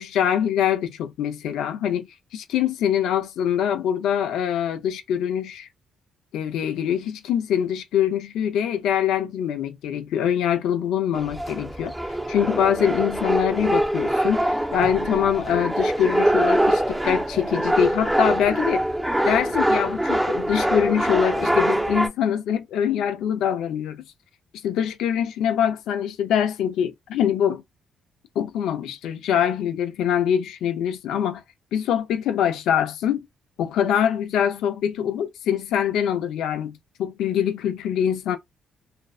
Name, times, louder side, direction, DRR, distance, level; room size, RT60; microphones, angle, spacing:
voice 1, 0.0-2.1 2.3-5.7 6.3-11.9 12.3-18.8 19.2-24.0 24.6-27.6 28.4-31.4 31.7-33.2 33.6-38.4, left 9 dB, 85° left, 0.5 m, -24 dB
sound 1, 11.1-22.1, right 1 dB, 10° right, 0.6 m, -23 dB
2.5 x 2.2 x 2.3 m
cardioid pair, 90°, 0 cm